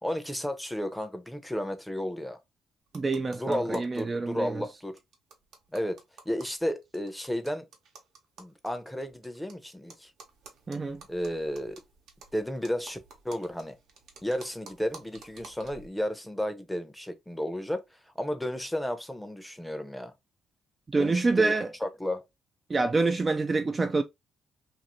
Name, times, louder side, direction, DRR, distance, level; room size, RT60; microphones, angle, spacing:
voice 1, 0.0-2.4 3.4-5.0 5.7-7.7 8.4-10.1 11.1-11.8 12.3-13.0 13.2-13.8 14.2-17.8 18.2-20.1 21.0-21.5 21.8-22.2, equal, 5° left, 0.6 m, -33 dB
voice 2, 2.9-4.6 10.7-11.0 20.9-21.7 22.7-24.0, right 3 dB, 30° right, 0.3 m, -26 dB
sound 1, 2.9-4.0 4.3-4.4 4.6-4.7 5.0-9.5 9.9-15.9, right 4 dB, 75° right, 0.9 m, -52 dB
2.6 x 2.6 x 3.0 m
cardioid pair, 90°, 0 cm